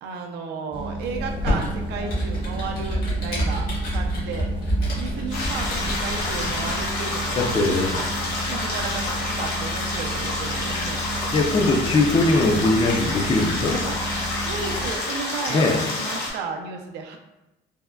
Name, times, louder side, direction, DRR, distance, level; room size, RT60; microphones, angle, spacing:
voice 1, 0.0-3.7 3.9-4.5 5.0-8.1 8.5-11.0 13.9-14.0 14.4-17.2, right 5 dB, 80° right, 3 dB, 0.4 m, -34 dB
sound 1, 0.7-14.9, right 1 dB, 30° right, 0.5 m, -33 dB
Computer keyboard, 1.1-6.9, right 1 dB, 60° left, 1.3 m, -28 dB
sound 2, 5.3-16.3, left 2 dB, 85° left, 0.7 m, -28 dB
voice 2, 7.4-7.9 11.3-13.8 15.5-15.8, left 2 dB, 30° left, 2 dB, 0.4 m, -21 dB
3.4 x 2.1 x 2.2 m, 0.96 s
cardioid pair, 110°, 17 cm